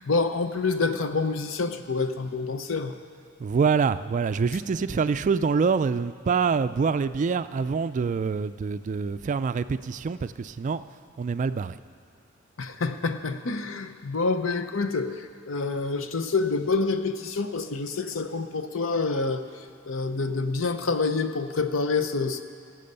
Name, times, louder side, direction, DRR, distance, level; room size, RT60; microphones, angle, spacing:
voice 1, 0.0-3.0 12.6-22.4, left 4 dB, 70° left, 9 dB, 0.7 m, -27 dB
voice 2, 3.4-10.8 11.2-11.7, right 5 dB, 40° right, 13 dB, 0.3 m, -25 dB
17.0 x 7.7 x 6.7 m, 2.2 s
head